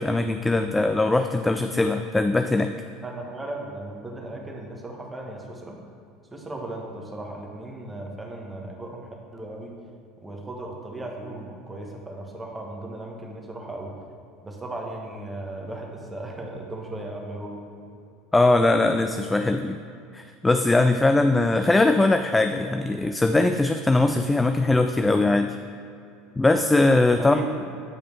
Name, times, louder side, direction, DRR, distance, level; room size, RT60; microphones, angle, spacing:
voice 1, 0.0-2.7 18.3-19.8 20.1-25.6 26.4-27.4, left 2 dB, 10° left, 7 dB, 0.3 m, -21 dB
voice 2, 3.0-5.8 6.3-9.7 10.2-13.9 14.4-17.6 27.2-27.5, right 2 dB, 15° right, 0 dB, 1.4 m, -36 dB
8.8 x 5.0 x 4.6 m, 2.6 s
figure-of-eight pair, 70°, 0 cm